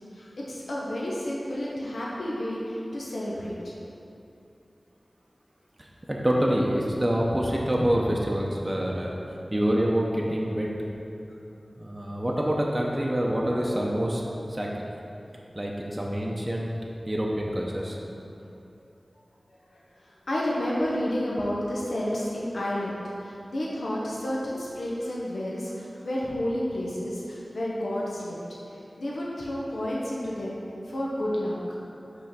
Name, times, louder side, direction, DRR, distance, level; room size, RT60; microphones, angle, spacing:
voice 1, 0.1-3.7 19.7-28.4 28.7-30.6 30.8-31.8, left 1 dB, 85° left, -5 dB, 0.9 m, -31 dB
voice 2, 5.8-10.7 11.8-14.9 15.5-16.7 17.1-18.0, equal, 20° right, -3 dB, 0.7 m, -26 dB
5.5 x 3.8 x 5.8 m, 2.8 s
wide cardioid pair, 70°, 0 cm